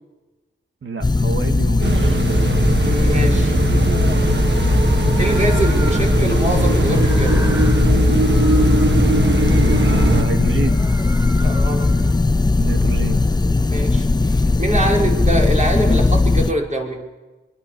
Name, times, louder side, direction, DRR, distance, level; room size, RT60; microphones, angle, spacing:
voice 1, 0.8-2.2 9.5-10.8 12.6-13.2, right 4 dB, 85° right, 6 dB, 2.2 m, -27 dB
sound 1, 1.0-16.5, left 3 dB, 20° left, 0.7 m, -18 dB
sound 2, 1.8-10.2, right 4 dB, 65° right, 1.7 m, -21 dB
sound 3, 2.2-6.2 6.5-12.2, right 1 dB, 15° right, 1.7 m, -36 dB
voice 2, 2.8-3.5 5.2-7.5 11.4-12.0 13.7-17.0, right 1 dB, 35° right, -1 dB, 6.1 m, -24 dB
24.5 x 24.5 x 7.0 m, 1.1 s
wide cardioid pair, 115°, 20 cm